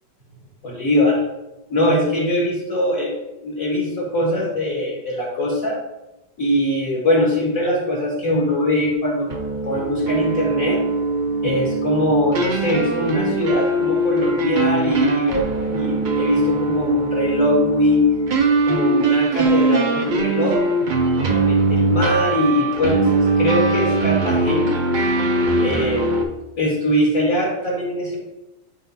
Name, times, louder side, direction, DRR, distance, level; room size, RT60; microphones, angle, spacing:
voice 1, 0.6-1.2 1.7-3.1 3.4-5.8 6.4-9.3 9.6-10.8 11.4-18.0 18.6-20.6 21.2-24.8 25.6-26.0 26.6-28.2, left 1 dB, 50° left, -3 dB, 2.0 m, -21 dB
sound 1, 9.3-26.2, right 3 dB, 85° right, 0.4 m, -21 dB
9.8 x 3.8 x 4.1 m, 0.95 s
omnidirectional pair, 1.9 m